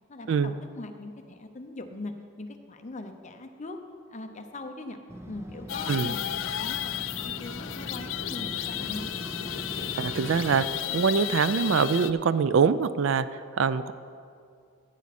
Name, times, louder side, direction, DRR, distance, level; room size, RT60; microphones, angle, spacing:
voice 1, 0.1-3.8 4.1-5.0 5.3-9.1, left 2 dB, 30° left, 6 dB, 0.7 m, -41 dB
Motorcycle, 5.1-10.7, right 1 dB, 10° right, 0.5 m, -40 dB
sound 1, 5.7-12.1, left 11 dB, 60° left, 0.4 m, -33 dB
voice 2, 10.0-10.6 10.9-13.3 13.6-13.9, right 6 dB, 60° right, 14 dB, 0.3 m, -23 dB
15.0 x 8.3 x 4.2 m, 2.3 s
head